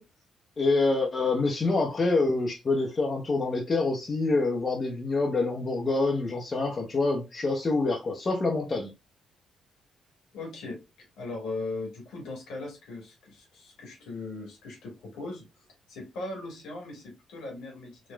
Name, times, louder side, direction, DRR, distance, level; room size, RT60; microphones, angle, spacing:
voice 1, 0.6-8.9, left 3 dB, 35° left, 0.7 m, -26 dB
voice 2, 10.3-18.1, left 2 dB, 65° left, 1.2 m, -39 dB
4.1 x 2.3 x 2.2 m
figure-of-eight pair, 40°, 0 cm